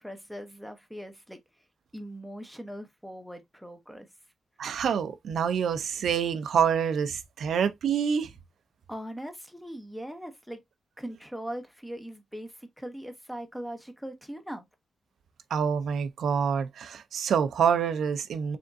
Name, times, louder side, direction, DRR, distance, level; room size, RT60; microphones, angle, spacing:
voice 1, 0.0-1.7 1.9-4.1 8.9-10.6 11.0-14.7, equal, ahead, 0.8 m, -40 dB
voice 2, 4.6-8.3 15.5-18.6, right 7 dB, 75° right, 0.6 m, -27 dB
5.0 x 3.5 x 2.6 m
wide cardioid pair, 170°, 0 cm